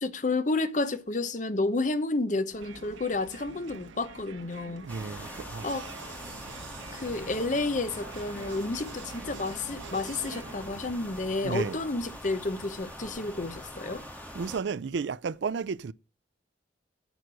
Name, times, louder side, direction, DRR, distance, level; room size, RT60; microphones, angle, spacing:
voice 1, 0.0-4.9 5.6-5.9 6.9-14.0, left 2 dB, 40° left, 0.8 m, -30 dB
Crowd, 2.5-11.3, right 4 dB, 85° right, 1.1 m, -46 dB
sound 1, 4.9-14.6, equal, 10° left, 1.8 m, -43 dB
voice 2, 4.9-5.9 11.4-11.8 14.3-15.9, right 5 dB, 70° right, 0.4 m, -33 dB
9.0 x 6.6 x 6.2 m
head